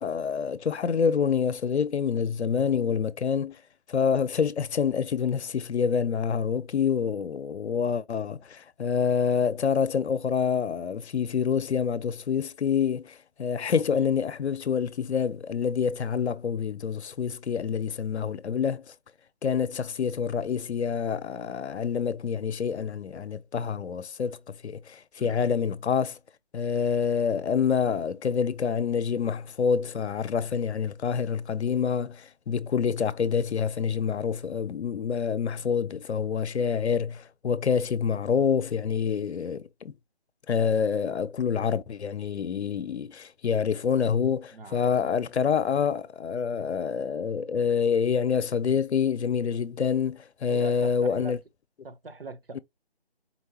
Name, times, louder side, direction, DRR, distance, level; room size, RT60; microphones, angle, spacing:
voice 1, 0.0-3.6 3.9-18.8 19.4-26.2 26.5-39.9 40.5-51.4, left 7 dB, 85° left, 0.6 m, -27 dB
voice 2, 13.7-14.1 25.2-25.5 44.5-45.1 50.5-51.4 51.8-52.6, right 3 dB, 60° right, 0.7 m, -42 dB
4.4 x 3.3 x 2.8 m
figure-of-eight pair, 175°, 32 cm